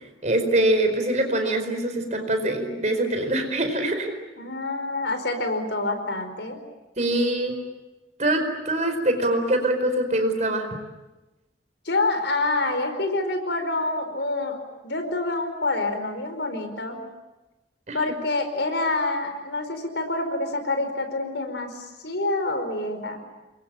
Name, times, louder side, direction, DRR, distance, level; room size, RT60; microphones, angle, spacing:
voice 1, 0.2-4.1 7.0-7.6 8.2-10.7 17.9-18.0, right 1 dB, 40° right, 6 dB, 4.8 m, -23 dB
voice 2, 4.4-6.6 11.8-14.6 14.8-17.0 17.9-23.2, left 2 dB, 85° left, 7 dB, 4.9 m, -27 dB
28.5 x 23.0 x 9.0 m, 1.1 s
head